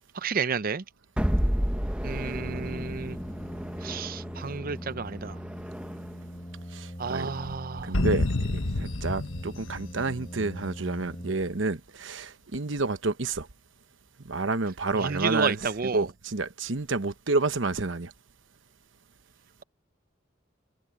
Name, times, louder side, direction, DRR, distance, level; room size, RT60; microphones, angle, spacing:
voice 1, 0.1-0.8 2.0-3.2 3.8-5.4 7.0-8.0 14.9-16.1, right 5 dB, 45° right, 0.6 m, -31 dB
sound 1, 1.2-6.3, equal, 5° right, 0.9 m, -32 dB
Brass instrument, 2.3-11.8, equal, 25° left, 4.1 m, -41 dB
voice 2, 6.7-7.5 7.8-13.5 14.2-18.1, right 3 dB, 65° right, 1.1 m, -30 dB
sound 2, 7.9-10.7, left 2 dB, 75° left, 1.3 m, -29 dB
head